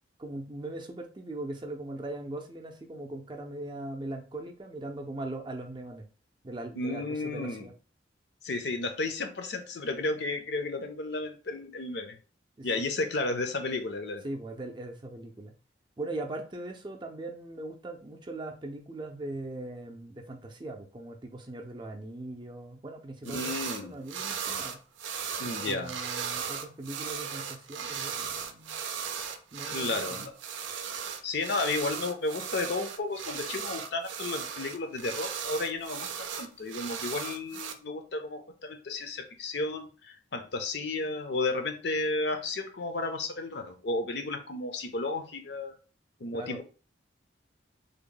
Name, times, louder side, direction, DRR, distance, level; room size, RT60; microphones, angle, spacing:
voice 1, 0.2-6.1 6.4-7.7 12.6-12.7 14.2-15.5 16.0-24.8 25.4-28.7 29.5-30.3 46.3-46.6, right 2 dB, 25° right, 0.5 m, -40 dB
voice 2, 6.8-7.7 8.4-12.2 12.6-14.3 23.2-23.9 25.4-25.9 29.6-30.3 31.2-45.8 46.2-46.6, left 3 dB, 65° left, 0.6 m, -33 dB
sound 1, 23.2-23.8 24.1-37.7, right 7 dB, 85° right, 0.5 m, -36 dB
3.5 x 2.1 x 3.8 m
head